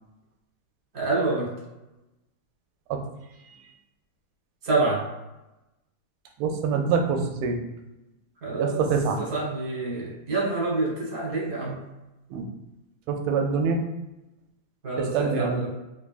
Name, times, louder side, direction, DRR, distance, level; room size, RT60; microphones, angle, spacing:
voice 1, 0.9-1.5 4.6-5.0 8.4-8.9 9.2-11.8 14.8-15.7, right 2 dB, 40° right, -4 dB, 1.1 m, -27 dB
voice 2, 6.4-7.6 8.6-9.2 12.3-12.5 13.1-13.8 15.0-15.5, right 5 dB, 85° right, 4 dB, 1.5 m, -25 dB
3.4 x 3.3 x 2.4 m, 0.97 s
omnidirectional pair, 2.4 m